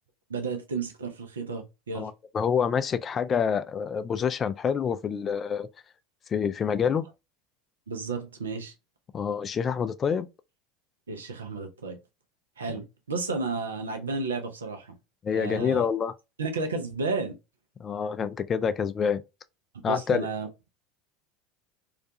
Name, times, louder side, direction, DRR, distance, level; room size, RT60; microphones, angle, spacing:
voice 1, 0.3-2.1 7.9-8.7 11.1-12.0 12.6-14.9 15.3-15.9 16.4-17.4 19.7-20.5, right 4 dB, 90° right, 0.5 m, -32 dB
voice 2, 1.9-5.7 6.3-7.1 9.1-10.3 12.7-12.8 15.2-16.1 17.8-19.2 19.8-20.3, left 7 dB, 35° left, 0.4 m, -27 dB
2.4 x 2.2 x 2.6 m
hypercardioid pair, 80°, 0 cm